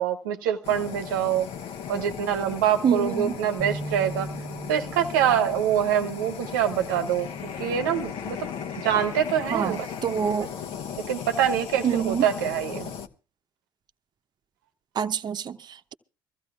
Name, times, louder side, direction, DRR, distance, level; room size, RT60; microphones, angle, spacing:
voice 1, 0.0-1.5 1.9-4.3 4.7-7.3 7.6-8.5 8.8-9.9 11.1-12.9, right 9 dB, 80° right, 0.9 m, -25 dB
Fire, 0.6-13.1, left 7 dB, 60° left, 1.3 m, -37 dB
voice 2, 2.8-3.4 9.5-10.5 11.8-12.3 15.0-15.9, right 7 dB, 45° right, 0.8 m, -26 dB
sound 1, 3.6-9.8, right 2 dB, 10° left, 1.6 m, -41 dB
24.5 x 15.0 x 2.4 m
hypercardioid pair, 55°, 10 cm